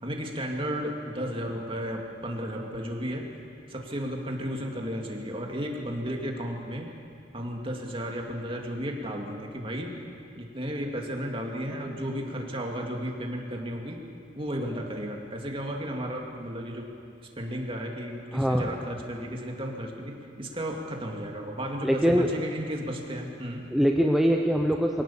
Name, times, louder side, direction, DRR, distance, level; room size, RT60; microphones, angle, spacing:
voice 1, 0.0-3.3 3.7-6.9 7.3-9.9 10.4-14.0 14.3-16.9 17.4-23.7, equal, 30° right, 1 dB, 2.4 m, -33 dB
voice 2, 18.3-18.7 21.8-22.3 23.7-25.0, equal, ahead, 1 dB, 0.8 m, -23 dB
22.5 x 17.5 x 7.2 m, 2.5 s
head